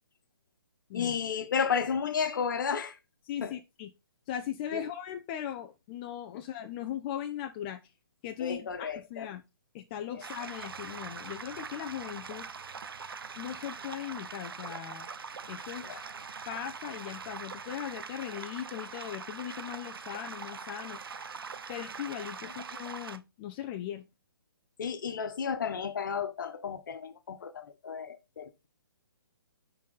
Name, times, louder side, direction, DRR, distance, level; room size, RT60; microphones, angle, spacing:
voice 1, 0.9-3.0 3.4-3.6 4.7-4.8 8.4-9.3 10.1-10.2 15.8-16.0 24.8-28.7, left 6 dB, 55° left, 1.3 m, -33 dB
voice 2, 3.3-3.9 4.3-7.8 8.2-9.4 9.7-12.5 13.4-15.1 15.5-15.9 16.5-21.0 21.7-24.0, left 10 dB, 25° left, 0.6 m, -39 dB
sound 1, 10.2-23.2, right 5 dB, 75° right, 0.7 m, -42 dB
9.7 x 4.1 x 3.9 m
hypercardioid pair, 145°, 12 cm